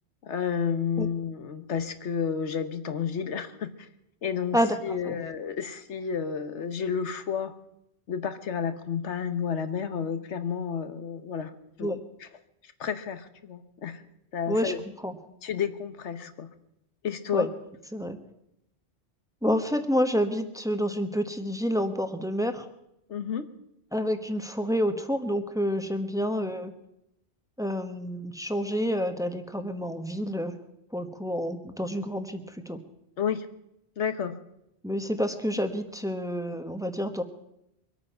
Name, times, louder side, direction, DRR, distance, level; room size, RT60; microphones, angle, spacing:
voice 1, 0.2-3.9 4.2-7.5 8.1-12.0 12.8-14.0 14.3-14.8 15.4-16.5 17.0-17.5 23.1-23.5 33.2-33.5 34.0-34.4, left 7 dB, 90° left, 10 dB, 1.3 m, -31 dB
voice 2, 19.4-22.7 23.9-26.7 27.6-30.5 30.9-32.8 34.8-37.2, equal, 5° right, 7 dB, 1.0 m, -28 dB
23.5 x 8.9 x 5.6 m, 0.83 s
omnidirectional pair, 1.1 m